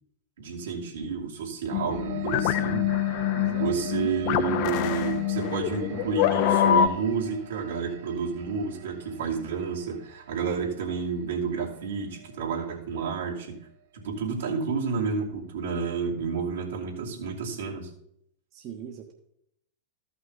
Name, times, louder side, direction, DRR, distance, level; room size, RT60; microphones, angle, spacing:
voice 1, 0.4-2.9 3.6-13.6 13.9-17.9, right 5 dB, 75° right, -3 dB, 2.6 m, -30 dB
sound 1, 1.7-6.9, left 11 dB, 50° left, 0.7 m, -25 dB
sound 2, 1.9-13.7, right 9 dB, 60° right, 2.4 m, -44 dB
voice 2, 3.3-3.8 18.5-19.1, right 8 dB, 40° right, 1 dB, 1.2 m, -41 dB
13.5 x 5.8 x 4.0 m, 0.73 s
hypercardioid pair, 100°, 0 cm